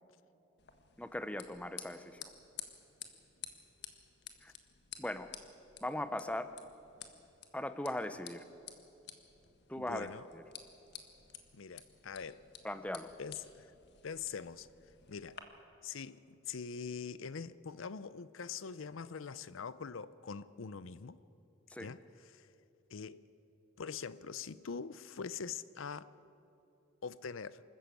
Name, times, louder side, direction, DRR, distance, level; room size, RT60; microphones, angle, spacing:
sound 1, 0.6-15.4, left 9 dB, 60° left, 1.6 m, -53 dB
voice 1, 1.0-2.2 4.4-4.5 5.0-5.3 5.8-6.5 7.5-8.5 9.7-10.4 12.6-13.1 21.7-21.9, left 1 dB, 5° left, 0.7 m, -39 dB
voice 2, 9.8-10.2 11.5-12.4 13.2-13.7 14.0-14.7 15.1-15.4 15.8-21.2 21.8-22.0 22.3-22.5 22.9-23.2 23.8-26.1 27.0-27.6, left 6 dB, 90° left, 0.6 m, -43 dB
24.5 x 14.0 x 8.4 m
head